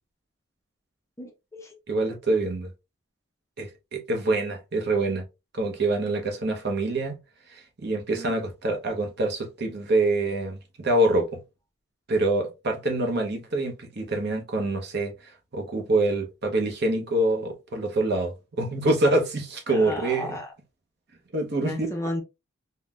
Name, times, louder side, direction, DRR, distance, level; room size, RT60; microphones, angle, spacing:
voice 1, 1.2-1.7 8.1-8.3 19.7-20.5 21.6-22.2, left 1 dB, 15° left, 0.5 m, -33 dB
voice 2, 1.9-2.7 3.6-5.2 5.5-7.2 7.5-11.4 12.1-20.4 21.3-21.9, right 2 dB, 50° right, 0.7 m, -26 dB
3.8 x 2.1 x 2.3 m
head